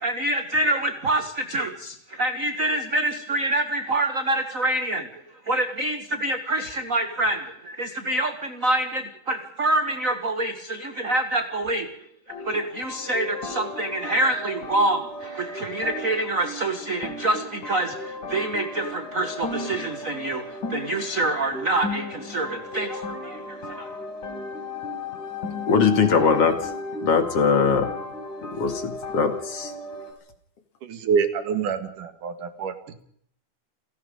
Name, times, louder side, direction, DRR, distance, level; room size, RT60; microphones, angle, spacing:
voice 1, 0.0-5.1 5.5-11.9 12.5-20.4 20.7-23.4 23.8-23.9, right 1 dB, 40° right, 1.2 m, -26 dB
sound 1, 12.3-30.1, left 2 dB, 70° left, 6.0 m, -35 dB
voice 2, 25.7-26.7 27.0-27.9 28.4-29.7, left 5 dB, 50° left, 2.9 m, -21 dB
voice 3, 30.8-32.7, right 6 dB, 80° right, 3.4 m, -26 dB
29.0 x 17.5 x 5.2 m
omnidirectional pair, 3.6 m